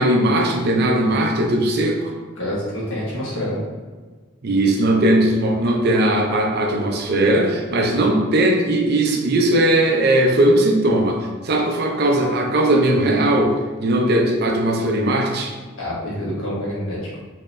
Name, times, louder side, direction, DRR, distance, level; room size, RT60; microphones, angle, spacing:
voice 1, 0.0-2.1 4.4-13.5 13.8-15.6, right 1 dB, 50° right, 2 dB, 0.4 m, -18 dB
voice 2, 2.3-3.6 15.8-17.2, equal, 65° left, -7 dB, 1.3 m, -27 dB
3.7 x 2.8 x 2.5 m, 1.4 s
head